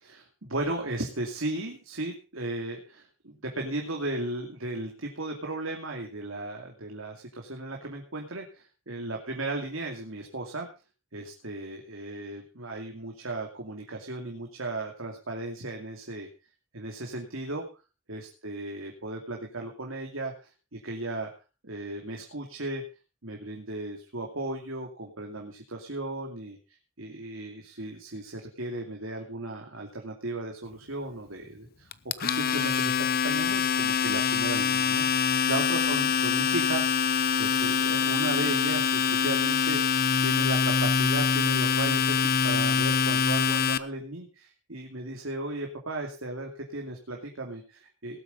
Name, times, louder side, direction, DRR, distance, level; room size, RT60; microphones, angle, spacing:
voice 1, 0.0-10.7 11.1-16.3 16.7-17.6 18.1-21.3 21.6-22.8 23.2-26.6 27.0-48.2, right 2 dB, 75° right, 2 dB, 2.5 m, -36 dB
Domestic sounds home sounds, 31.9-43.8, left 6 dB, 45° left, 0.7 m, -25 dB
19.0 x 8.2 x 5.2 m, 0.33 s
head